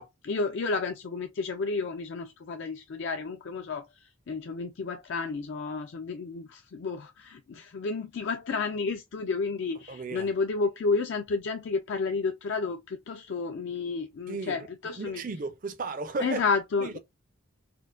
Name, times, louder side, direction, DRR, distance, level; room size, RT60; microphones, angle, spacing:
voice 1, 0.0-3.9 4.3-15.2 16.2-17.0, left 4 dB, 55° left, 0.4 m, -31 dB
voice 2, 9.9-10.3 14.3-16.4 16.8-17.0, right 3 dB, 40° right, 0.5 m, -35 dB
4.3 x 2.1 x 2.4 m
head